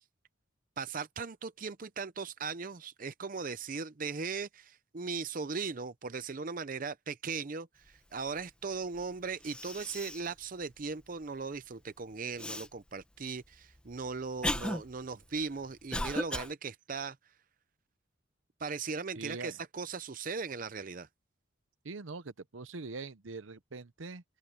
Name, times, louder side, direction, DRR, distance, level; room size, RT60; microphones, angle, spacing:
voice 1, 0.8-17.2 18.6-21.1, right 4 dB, 45° right, 0.6 m, -38 dB
Cough, 9.0-9.1 9.4-10.3 10.8-10.9 12.4-12.7 13.5-16.5, left 1 dB, 5° left, 1.1 m, -36 dB
voice 2, 19.2-19.6 21.8-24.2, right 3 dB, 80° right, 0.8 m, -43 dB
open air
head